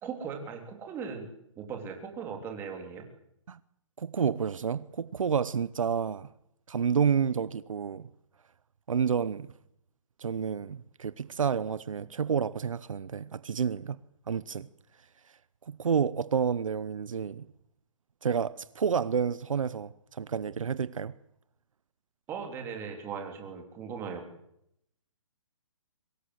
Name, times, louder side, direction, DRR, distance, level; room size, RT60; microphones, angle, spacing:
voice 1, 0.0-1.3 1.6-3.1 22.3-24.3, right 6 dB, 15° right, 3.2 m, -38 dB
voice 2, 4.0-6.3 6.7-8.1 8.9-9.5 10.2-14.0 14.3-14.7 15.7-17.5 18.2-21.1, right 7 dB, 80° right, 0.9 m, -29 dB
23.5 x 19.5 x 7.9 m
hypercardioid pair, 160°, 17 cm